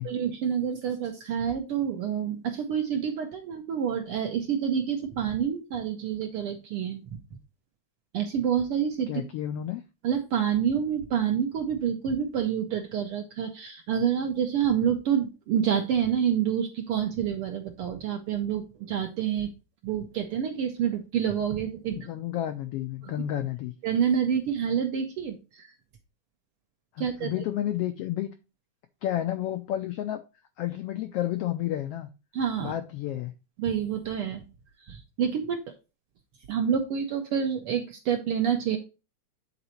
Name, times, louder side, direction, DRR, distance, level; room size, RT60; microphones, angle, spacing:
voice 1, 0.0-7.0 8.1-9.2 10.0-19.5 19.8-22.0 23.0-23.1 23.8-25.7 27.0-27.3 32.3-32.7 33.6-34.4 34.9-35.6 36.5-38.8, right 8 dB, 70° right, 1.4 m, -28 dB
voice 2, 9.1-9.8 21.9-23.7 26.9-28.3 29.0-30.2 30.6-32.1 32.6-33.3, left 12 dB, 85° left, 1.3 m, -31 dB
8.1 x 3.9 x 4.3 m
omnidirectional pair, 3.3 m